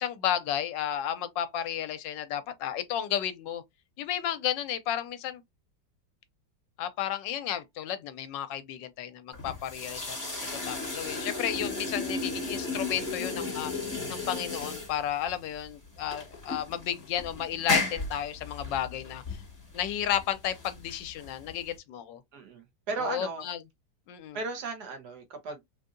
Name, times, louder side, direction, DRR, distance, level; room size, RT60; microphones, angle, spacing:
voice 1, 0.0-3.6 4.0-5.4 6.8-19.2 19.7-22.2 23.0-23.6 24.1-24.4, left 10 dB, 80° left, 1.2 m, -33 dB
sound 1, 9.3-21.8, left 3 dB, 10° left, 1.4 m, -35 dB
voice 2, 22.3-23.5 24.3-25.6, right 4 dB, 65° right, 1.3 m, -36 dB
3.7 x 2.6 x 2.5 m
omnidirectional pair, 2.0 m